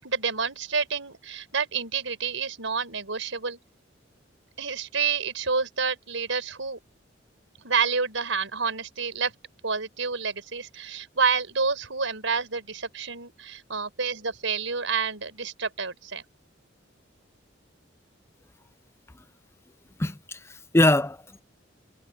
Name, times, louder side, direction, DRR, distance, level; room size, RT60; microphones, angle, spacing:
voice 1, 0.0-3.6 4.6-6.8 7.6-9.3 9.6-16.2, right 5 dB, 90° right, 4.8 m, -28 dB
voice 2, 20.0-21.4, left 1 dB, 15° left, 0.6 m, -23 dB
head